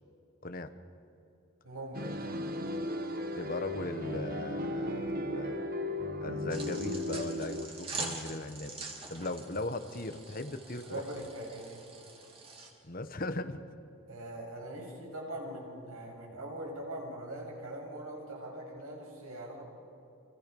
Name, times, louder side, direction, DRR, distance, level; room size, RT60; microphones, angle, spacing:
voice 1, 1.6-2.4 10.8-11.9 14.1-19.6, right 1 dB, 85° right, -1 dB, 7.2 m, -42 dB
sound 1, 1.9-7.7, left 1 dB, 40° right, 1.3 m, -36 dB
voice 2, 3.4-5.6 6.2-11.0 12.8-13.6, left 2 dB, 40° left, 9 dB, 1.2 m, -38 dB
sound 2, 6.5-12.7, right 3 dB, 25° right, 3.0 m, -44 dB
30.0 x 27.0 x 5.4 m, 2.8 s
head